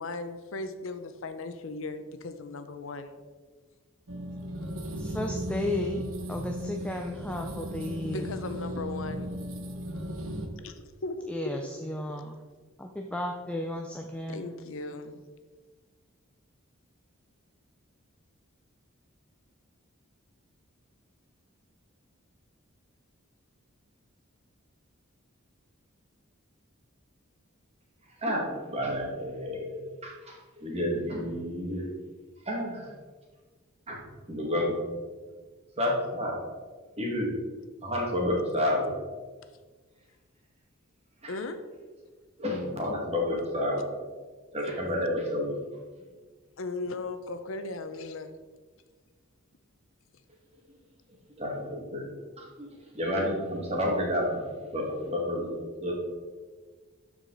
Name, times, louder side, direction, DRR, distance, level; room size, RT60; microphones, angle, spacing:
voice 1, 0.0-3.2 8.0-9.4 10.6-11.2 14.3-15.2 41.3-41.6 46.6-48.3, left 3 dB, 65° left, 9 dB, 0.6 m, -37 dB
sound 1, 4.1-10.5, equal, 75° right, 1.1 m, -36 dB
voice 2, 5.0-6.0 6.3-8.3 11.3-12.4 12.8-14.5, left 1 dB, 5° left, 3 dB, 0.4 m, -34 dB
voice 3, 28.2-31.9 32.5-32.9 33.9-34.0 34.3-34.8 35.8-36.4 37.0-37.3 37.8-38.9 41.2-41.4 42.4-43.9 44.5-45.6 51.4-52.1 52.4-54.4 54.7-55.9, left 1 dB, 30° right, -1 dB, 2.0 m, -30 dB
12.0 x 4.8 x 4.0 m, 1.4 s
head